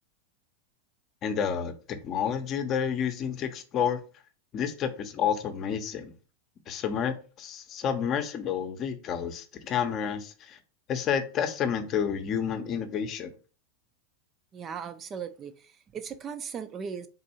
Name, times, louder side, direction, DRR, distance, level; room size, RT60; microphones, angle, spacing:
voice 1, 1.2-4.0 4.5-6.1 6.7-10.6 10.9-13.3, left 7 dB, 40° left, 0.8 m, -30 dB
voice 2, 14.5-17.1, right 7 dB, 30° right, 0.5 m, -38 dB
3.8 x 2.6 x 4.3 m
hypercardioid pair, 110°, 0 cm